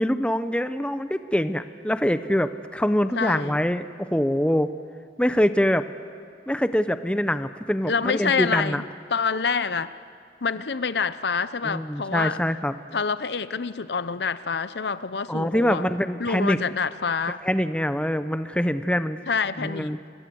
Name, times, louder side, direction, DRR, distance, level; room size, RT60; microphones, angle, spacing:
voice 1, 0.0-4.7 5.2-5.9 6.5-8.8 11.6-12.7 15.3-16.6 17.4-19.2 19.6-20.0, equal, 5° left, 0.7 m, -24 dB
voice 2, 3.2-3.6 7.9-8.8 9.1-9.9 10.4-12.4 12.9-15.8 16.2-17.4 19.3-20.0, left 5 dB, 75° left, 0.8 m, -27 dB
27.0 x 24.5 x 7.8 m
head